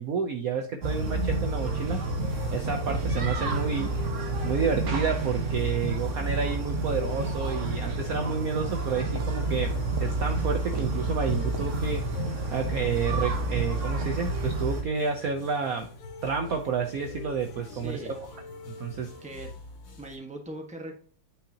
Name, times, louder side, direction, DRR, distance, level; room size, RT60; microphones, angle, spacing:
voice 1, 0.0-2.0 2.5-4.0 4.4-9.7 10.0-12.1 12.5-15.9 16.2-18.3 18.8-19.1, right 5 dB, 75° right, 5 dB, 0.8 m, -30 dB
sound 1, 0.8-14.8, right 2 dB, 45° right, 1.1 m, -29 dB
sound 2, 1.0-19.5, left 3 dB, 85° left, 1.9 m, -47 dB
sound 3, 1.6-20.2, left 3 dB, 65° left, 3.4 m, -46 dB
voice 2, 17.7-18.1 19.2-19.5 20.0-21.0, right 1 dB, 5° right, 2 dB, 0.9 m, -40 dB
8.8 x 5.6 x 2.8 m, 0.43 s
omnidirectional pair, 2.4 m